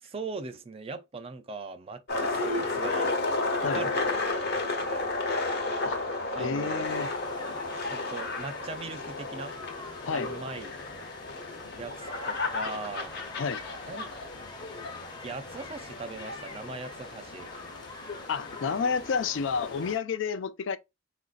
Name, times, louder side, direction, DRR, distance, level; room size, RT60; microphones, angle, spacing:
voice 1, 0.0-3.1 3.6-5.1 6.3-6.9 7.9-9.6 10.1-10.8 11.8-13.1 13.9-14.1 15.2-17.5, right 3 dB, 30° right, 0.4 m, -39 dB
sound 1, 2.1-19.9, left 3 dB, 55° left, 0.8 m, -33 dB
voice 2, 6.4-7.1 10.0-10.3 13.4-13.6 18.3-20.8, left 5 dB, 75° left, 0.4 m, -30 dB
sound 2, 6.8-20.0, left 2 dB, 20° left, 0.7 m, -46 dB
3.9 x 2.5 x 2.4 m
head